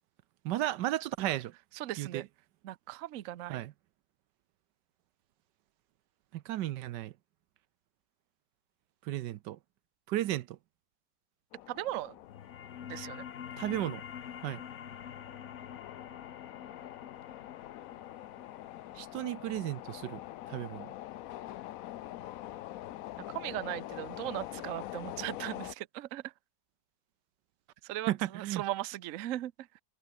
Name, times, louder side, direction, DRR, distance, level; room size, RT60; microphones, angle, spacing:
voice 1, 0.4-1.5 2.0-2.2 3.5-3.7 6.3-7.1 9.1-9.6 10.1-10.6 13.6-14.0 14.4-14.6 19.0-20.2 20.5-20.9 28.1-28.6, right 14 dB, 80° right, 1.3 m, -34 dB
voice 2, 1.8-2.3 2.6-3.6 11.7-12.1 12.9-13.2 23.3-26.2 27.8-29.5, right 14 dB, 60° right, 0.9 m, -38 dB
sound 1, 11.5-25.7, left 14 dB, 70° left, 0.8 m, -45 dB
sound 2, 12.2-23.3, left 8 dB, 50° left, 1.2 m, -48 dB
omnidirectional pair, 1.9 m